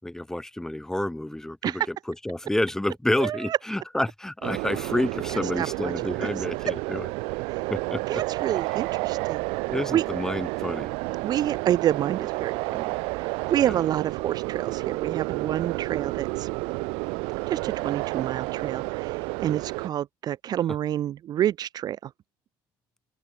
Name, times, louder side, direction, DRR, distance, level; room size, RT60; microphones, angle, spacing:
voice 1, 0.0-1.9 2.2-7.1 7.7-8.2 9.7-10.9 13.6-13.8, left 1 dB, 5° left, 6.0 m, -29 dB
voice 2, 3.2-3.6 5.3-5.9 6.2-6.5 7.5-7.7 8.1-9.4 9.9-10.0 11.2-16.5 17.5-22.1, right 11 dB, 45° right, 0.8 m, -28 dB
sound 1, 4.4-19.9, right 29 dB, 80° right, 1.2 m, -30 dB
open air
cardioid pair, 110°, 9 cm